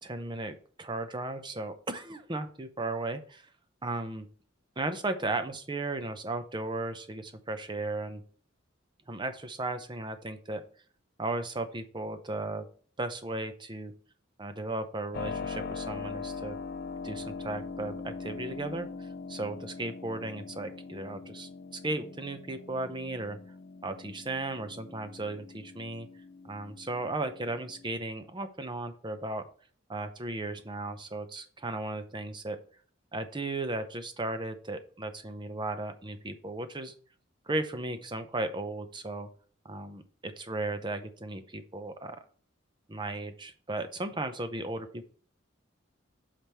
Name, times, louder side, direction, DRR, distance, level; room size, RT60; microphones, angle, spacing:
voice 1, 0.0-3.5 3.8-4.3 4.8-8.2 9.1-10.6 11.2-12.7 13.0-13.9 14.4-16.6 17.0-23.4 23.8-26.1 26.4-29.4 29.9-32.6 33.1-36.9 37.5-39.3 39.6-42.2 42.9-45.1, right 2 dB, 25° right, 9 dB, 0.7 m, -35 dB
Keyboard (musical), 15.1-27.9, left 4 dB, 55° left, 0.5 m, -42 dB
5.8 x 5.1 x 4.5 m, 0.43 s
head